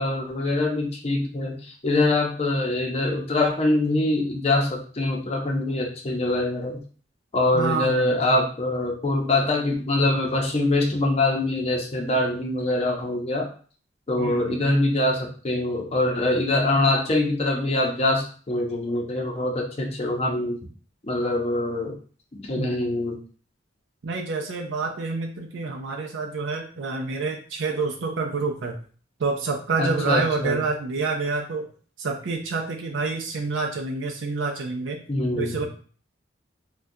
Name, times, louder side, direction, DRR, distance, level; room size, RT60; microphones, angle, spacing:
voice 1, 0.0-6.8 7.3-13.5 14.1-20.6 21.0-21.9 22.3-23.2 29.8-30.6 35.1-35.7, left 2 dB, 35° left, 0 dB, 0.6 m, -24 dB
voice 2, 7.5-8.2 14.2-14.7 22.6-22.9 24.0-28.8 29.2-31.7 32.0-35.0 35.4-35.7, right 4 dB, 75° right, 2 dB, 0.4 m, -28 dB
3.6 x 2.2 x 2.6 m, 0.42 s
head